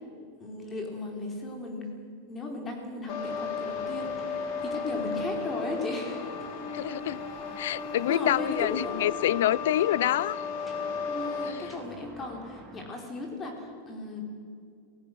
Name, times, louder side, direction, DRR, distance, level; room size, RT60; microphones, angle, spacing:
voice 1, 0.4-1.9 2.3-6.3 8.1-9.2 11.1-14.2, left 2 dB, 20° left, 3.8 m, -36 dB
sound 1, 3.1-11.5, left 5 dB, 45° left, 3.5 m, -35 dB
sound 2, 3.3-12.9, right 2 dB, 5° right, 2.8 m, -49 dB
voice 2, 6.7-7.2 7.6-10.4 11.5-11.7, left 13 dB, 75° left, 0.5 m, -27 dB
26.5 x 18.0 x 6.4 m
supercardioid pair, 165°, 0 cm